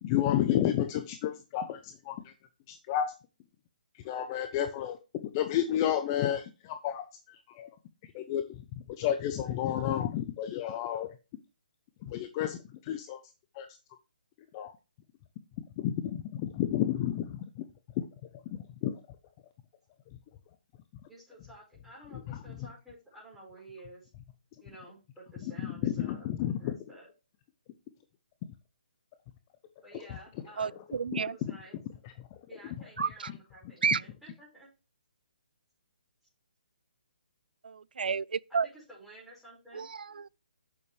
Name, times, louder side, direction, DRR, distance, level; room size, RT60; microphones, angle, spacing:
voice 1, 0.0-2.3 2.7-3.1 4.0-5.0 5.3-7.7 8.1-8.4 9.0-11.1 12.0-13.2 13.5-13.7 14.5-14.7 15.8-17.6 18.0-18.1 18.8-19.0 22.3-22.4 25.8-26.8 31.1-31.2, left 11 dB, 25° left, 0.6 m, -31 dB
voice 2, 21.1-24.1 24.6-26.3 26.6-27.1 29.8-30.8 31.2-31.8 32.5-34.7 38.5-39.9, right 1 dB, ahead, 5.2 m, -52 dB
voice 3, 30.6-31.4 33.0-33.3 33.8-34.0 37.6-38.7 39.7-40.3, right 6 dB, 75° right, 0.3 m, -31 dB
8.4 x 6.9 x 3.2 m
hypercardioid pair, 155°, 5 cm